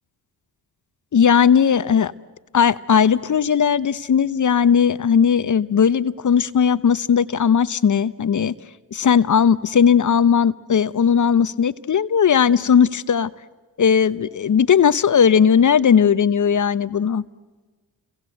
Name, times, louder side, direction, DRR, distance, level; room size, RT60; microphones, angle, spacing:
voice 1, 1.1-2.1 2.5-8.5 8.9-13.3 13.8-17.2, left 7 dB, 45° left, 16 dB, 1.0 m, -17 dB
30.0 x 23.0 x 8.0 m, 1.3 s
supercardioid pair, 50°, 42 cm